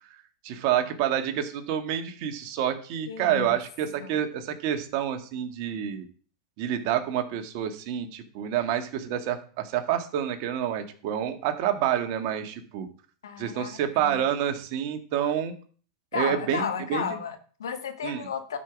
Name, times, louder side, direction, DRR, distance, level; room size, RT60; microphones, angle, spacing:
voice 1, 0.4-6.1 6.6-12.9 13.4-15.5 16.1-17.2 18.0-18.3, right 10 dB, 55° right, 7 dB, 1.9 m, -28 dB
voice 2, 3.1-3.5 4.0-4.2 13.2-14.2 16.1-18.6, left 7 dB, 85° left, 7 dB, 1.8 m, -33 dB
12.0 x 5.6 x 6.1 m, 0.42 s
hypercardioid pair, 100°, 2 cm